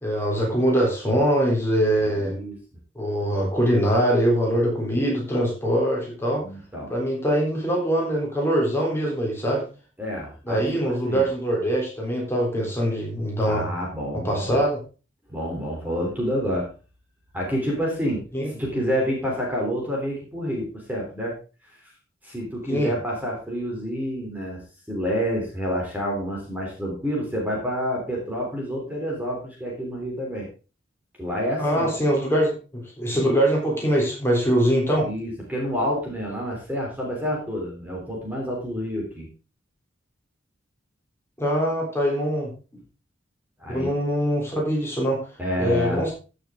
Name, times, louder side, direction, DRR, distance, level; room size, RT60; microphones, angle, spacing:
voice 1, 0.0-2.3 3.0-6.4 6.9-9.7 10.5-13.7 14.2-14.8 18.3-18.5 22.7-22.9 31.6-35.1 41.4-42.5 43.7-45.2 45.6-46.1, equal, 15° left, -2 dB, 3.6 m, -23 dB
voice 2, 2.0-2.6 6.4-6.9 10.0-11.2 13.4-14.6 15.3-16.7 17.3-18.2 18.5-21.3 22.2-24.6 24.9-30.5 31.2-32.2 35.0-39.3 43.6-43.9 45.4-46.0, equal, 10° right, -2 dB, 3.4 m, -28 dB
15.0 x 6.8 x 3.7 m, 0.34 s
head